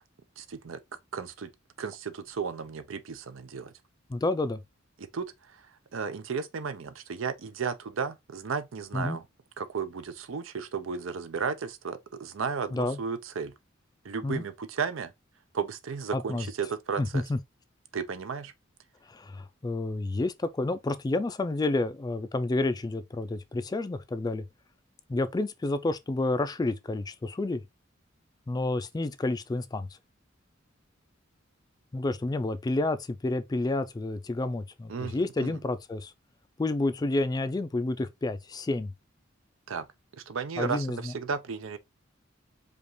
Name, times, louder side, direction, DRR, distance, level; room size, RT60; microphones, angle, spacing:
voice 1, 0.4-0.8 1.1-1.5 1.8-3.7 5.0-5.6 5.9-9.2 9.6-13.5 14.0-15.1 15.5-17.2 17.9-18.5 34.9-35.5 39.7-39.9 40.2-41.8, right 5 dB, 80° right, 0.6 m, -34 dB
voice 2, 4.1-4.6 8.9-9.2 12.7-13.0 14.2-14.4 16.1-16.5 17.0-17.4 19.1-24.4 25.1-27.6 28.5-29.9 31.9-36.1 36.6-38.9 40.6-41.1, left 2 dB, 20° left, 0.3 m, -29 dB
5.1 x 2.4 x 3.0 m
head